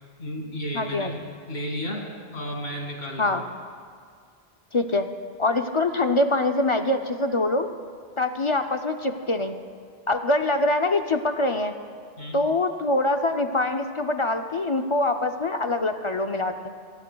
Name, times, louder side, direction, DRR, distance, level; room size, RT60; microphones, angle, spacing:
voice 1, 0.2-3.4 12.2-12.4, equal, 85° left, 0 dB, 2.5 m, -33 dB
voice 2, 0.7-1.1 3.2-3.4 4.7-5.1 5.4-7.7 8.2-9.6 10.1-11.8 12.3-16.7, left 2 dB, 40° left, 6 dB, 0.4 m, -24 dB
24.0 x 17.0 x 2.3 m, 2.1 s
omnidirectional pair, 1.0 m